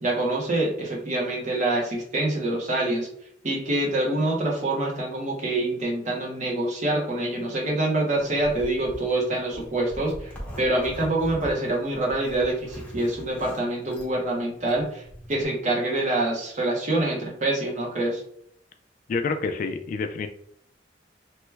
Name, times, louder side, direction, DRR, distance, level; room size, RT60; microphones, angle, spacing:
voice 1, 0.0-3.1 3.4-15.0 15.3-18.2, right 2 dB, 45° right, -1 dB, 0.9 m, -26 dB
Zipper (clothing), 8.2-15.4, equal, 10° left, 0.7 m, -42 dB
voice 2, 19.1-20.3, left 4 dB, 50° left, 7 dB, 0.3 m, -28 dB
2.9 x 2.2 x 3.3 m, 0.66 s
head